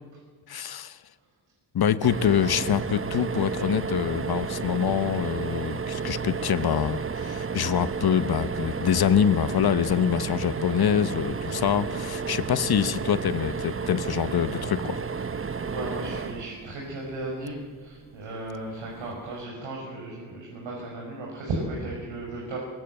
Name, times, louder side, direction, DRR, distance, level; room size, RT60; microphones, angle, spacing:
voice 1, 0.5-1.0 1.7-15.0, left 8 dB, 55° left, 13 dB, 1.2 m, -25 dB
sound 1, 2.0-17.3 18.9-19.1 19.4-19.5, right 5 dB, 30° right, 1.0 m, -32 dB
voice 2, 15.6-22.6, right 2 dB, 75° right, -2 dB, 6.3 m, -35 dB
22.0 x 19.5 x 7.9 m, 1.5 s
cardioid pair, 70°, 46 cm